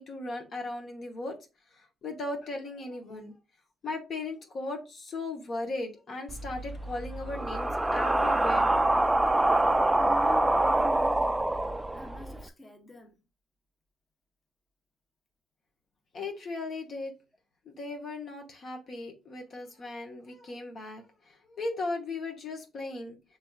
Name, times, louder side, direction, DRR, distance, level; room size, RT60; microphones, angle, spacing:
voice 1, 0.0-1.4 1.7-3.3 3.8-8.7 16.1-17.1 17.6-23.2, left 2 dB, 50° left, 1.0 m, -37 dB
sound 1, 6.3-12.4, right 1 dB, 10° right, 0.3 m, -26 dB
voice 2, 9.9-11.4 11.9-13.2, left 1 dB, 20° left, 1.0 m, -42 dB
6.0 x 3.4 x 2.3 m
cardioid pair, 115°, 0 cm